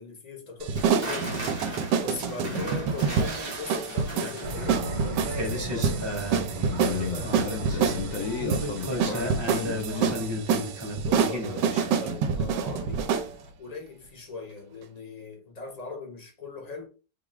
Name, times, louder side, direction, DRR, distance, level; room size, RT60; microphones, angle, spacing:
voice 1, 0.0-6.1 7.0-7.5 10.9-13.1 13.6-16.9, left 3 dB, 45° left, 0.5 m, -40 dB
sound 1, 0.6-13.3, right 6 dB, 85° right, 1.3 m, -27 dB
sound 2, 0.7-12.8 13.1-13.4, equal, 25° right, 0.6 m, -35 dB
voice 2, 2.5-2.8 6.6-10.5, left 6 dB, 65° left, 0.9 m, -34 dB
sound 3, 4.4-10.7, right 2 dB, 60° right, 1.3 m, -36 dB
4.8 x 2.4 x 3.0 m
omnidirectional pair, 1.9 m